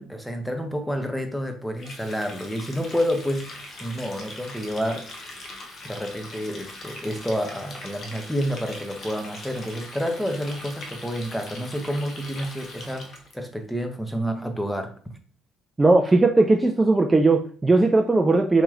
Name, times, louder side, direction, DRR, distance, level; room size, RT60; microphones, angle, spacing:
voice 1, 0.0-5.1 5.8-14.9, equal, 5° left, 0.7 m, -29 dB
Water tap faucet, 1.8-13.3, left 2 dB, 50° left, 0.8 m, -41 dB
voice 2, 15.8-18.6, right 2 dB, 20° right, 0.4 m, -18 dB
3.0 x 2.9 x 2.4 m
hypercardioid pair, 65°, 0 cm